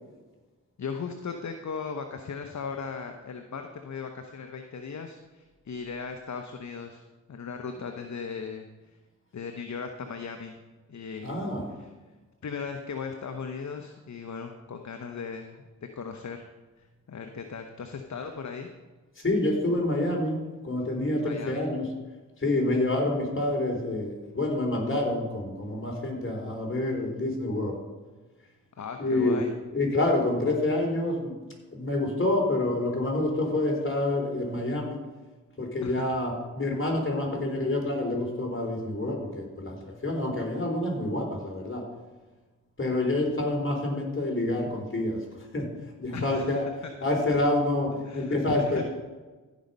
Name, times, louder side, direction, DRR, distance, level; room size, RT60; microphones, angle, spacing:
voice 1, 0.8-7.0 7.3-8.7 9.3-10.6 10.9-11.4 11.8-11.9 12.4-15.7 15.9-16.4 16.8-18.7 21.2-21.6 28.8-29.5 35.8-36.0 46.1-46.6 48.1-48.8, left 5 dB, 55° left, 5 dB, 1.0 m, -37 dB
voice 2, 11.2-11.7 19.2-21.9 22.4-27.8 29.0-29.5 29.7-31.3 31.7-35.0 35.6-41.9 42.8-45.7 46.0-46.7 47.0-48.8, left 2 dB, 35° left, 0 dB, 3.9 m, -27 dB
15.5 x 5.3 x 5.5 m, 1.2 s
cardioid pair, 45°, 34 cm